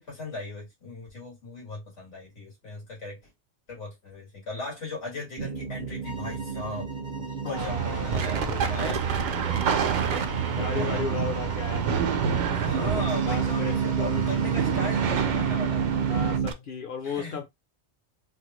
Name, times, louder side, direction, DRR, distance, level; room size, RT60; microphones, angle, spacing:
voice 1, 0.0-3.2 3.7-6.9 7.5-11.0 12.6-15.9 17.0-17.4, left 2 dB, 85° left, 2.1 m, -38 dB
sound 1, 5.4-16.5, right 7 dB, 55° right, 0.5 m, -29 dB
sound 2, 6.0-15.2, left 2 dB, 5° right, 0.4 m, -47 dB
voice 2, 7.4-8.8 10.5-12.2 12.7-14.4 16.1-17.5, left 5 dB, 60° left, 0.6 m, -35 dB
sound 3, 7.6-16.4, right 7 dB, 85° right, 1.0 m, -30 dB
3.7 x 2.1 x 2.9 m
omnidirectional pair, 1.2 m